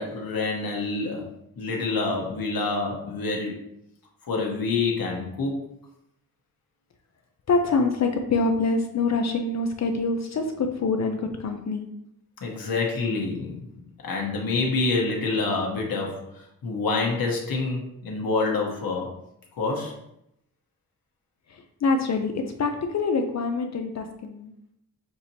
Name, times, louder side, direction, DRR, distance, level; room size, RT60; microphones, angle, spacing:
voice 1, 0.0-3.6 4.2-5.7 12.4-13.6 14.0-19.1 19.5-19.9, left 3 dB, 75° left, -1 dB, 1.2 m, -27 dB
voice 2, 7.5-11.9 21.5-24.5, left 3 dB, 50° left, 4 dB, 0.5 m, -25 dB
6.6 x 2.8 x 2.8 m, 0.77 s
wide cardioid pair, 180°, 36 cm